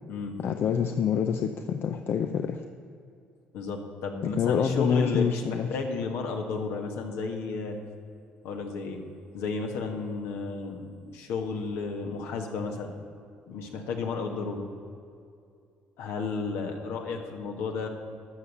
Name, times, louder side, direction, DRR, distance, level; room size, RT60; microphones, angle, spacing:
voice 1, 0.4-2.6 4.4-5.7, left 7 dB, 60° left, 6 dB, 0.6 m, -26 dB
voice 2, 3.5-7.7 8.4-9.0 9.3-13.0 13.5-14.7 16.0-17.9, left 4 dB, 80° left, 3 dB, 1.6 m, -33 dB
13.0 x 6.5 x 7.2 m, 2.4 s
supercardioid pair, 65°, 4 cm